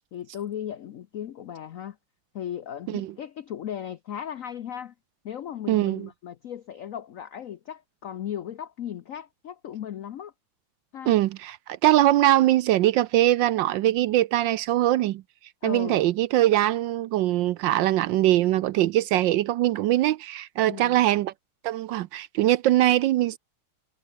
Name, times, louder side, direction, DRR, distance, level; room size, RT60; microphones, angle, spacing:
voice 1, 0.1-2.0 2.3-4.9 5.2-10.3 10.9-11.1 15.6-16.0 20.7-21.0, left 10 dB, 85° left, 0.7 m, -36 dB
voice 2, 5.7-6.1 11.1-11.6 11.8-15.2 15.6-21.3 21.6-23.4, right 14 dB, 70° right, 1.2 m, -22 dB
omnidirectional pair, 2.3 m